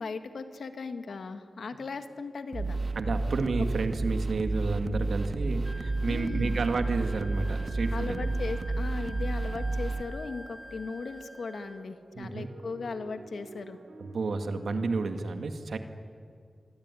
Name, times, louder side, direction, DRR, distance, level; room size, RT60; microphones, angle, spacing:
voice 1, 0.0-2.8 6.1-6.6 7.9-13.8, left 4 dB, 85° left, 9 dB, 1.9 m, -37 dB
sound 1, 2.5-10.0, right 2 dB, 50° right, 1.4 m, -31 dB
voice 2, 3.0-8.3 12.2-12.5 14.0-15.8, right 3 dB, 90° right, 7 dB, 2.1 m, -31 dB
Wind instrument woodwind instrument, 5.6-11.9, equal, 5° right, 1.0 m, -48 dB
sound 2, 6.3-15.2, right 3 dB, 70° right, 4.0 m, -51 dB
26.5 x 22.5 x 9.9 m, 2.3 s
wide cardioid pair, 125°, 0 cm